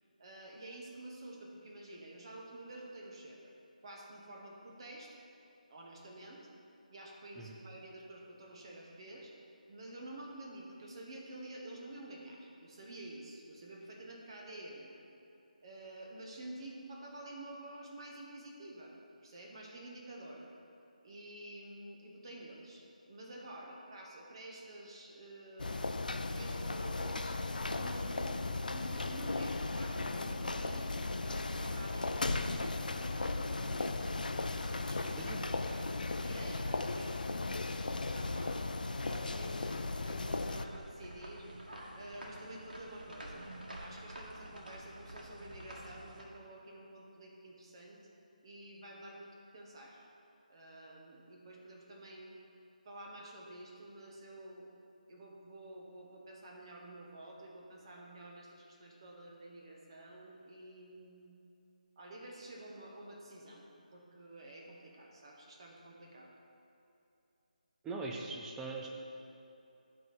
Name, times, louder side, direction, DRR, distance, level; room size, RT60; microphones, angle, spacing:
voice 1, 0.2-3.5 3.8-5.1 5.7-6.4 6.9-9.3 9.7-15.0 15.6-18.9 19.2-20.5 21.0-27.4 27.7-30.9 31.2-34.1 34.6-35.9 36.2-38.6 39.1-41.5 41.9-43.4 43.8-48.0 48.4-50.0 50.5-52.3 52.8-54.6 55.1-61.3 62.0-63.7 63.9-66.3, right 1 dB, 35° right, -1 dB, 1.2 m, -50 dB
sound 1, 25.6-40.7, left 3 dB, 80° left, 0.4 m, -36 dB
sound 2, 40.3-46.2, right 1 dB, 80° right, 1.7 m, -49 dB
voice 2, 67.8-68.9, right 3 dB, 5° right, 0 dB, 0.4 m, -41 dB
10.5 x 3.6 x 5.4 m, 2.8 s
figure-of-eight pair, 165°, 5 cm